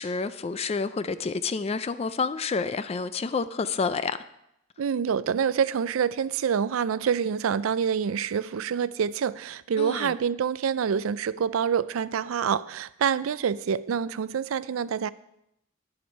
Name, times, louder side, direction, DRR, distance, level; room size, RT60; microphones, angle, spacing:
voice 1, 0.0-4.2 9.8-10.2, left 4 dB, 30° left, 0.3 m, -29 dB
voice 2, 4.8-15.1, right 7 dB, 90° right, 0.4 m, -26 dB
10.5 x 7.8 x 5.3 m
head